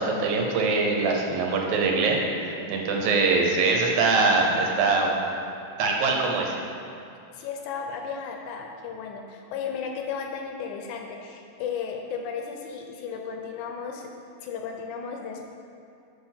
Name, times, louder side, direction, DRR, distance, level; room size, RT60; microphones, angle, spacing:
voice 1, 0.0-5.1 5.8-6.5, right 3 dB, 75° right, 0 dB, 1.9 m, -23 dB
voice 2, 7.3-14.1 14.4-15.5, left 6 dB, 80° left, 3 dB, 1.8 m, -34 dB
6.6 x 5.0 x 5.8 m, 2.6 s
omnidirectional pair, 4.0 m